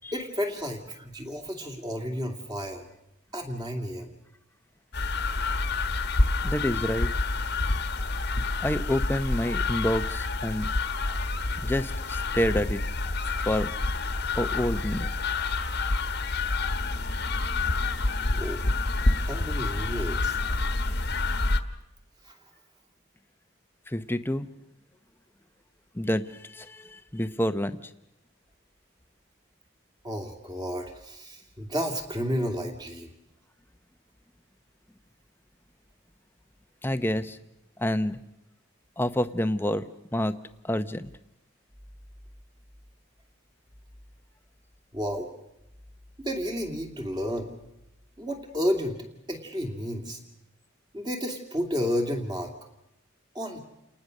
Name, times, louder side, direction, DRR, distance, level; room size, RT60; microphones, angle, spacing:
voice 1, 0.1-2.8 3.3-4.1 18.3-18.6 19.2-20.4 22.3-22.4 30.0-33.1 44.9-45.3 46.2-47.5 48.2-50.2 50.9-52.5 53.3-53.6, equal, 20° right, 3 dB, 2.6 m, -31 dB
sound 1, 4.9-21.6, left 3 dB, 50° left, 1.3 m, -28 dB
voice 2, 6.4-7.1 8.6-10.7 11.6-12.8 13.5-13.7 14.3-15.1 23.9-24.5 25.9-27.8 36.8-37.4 37.8-38.2 39.0-39.8 40.1-40.4 40.6-41.1, left 1 dB, 10° left, 11 dB, 0.8 m, -28 dB
29.5 x 19.0 x 6.6 m, 0.85 s
head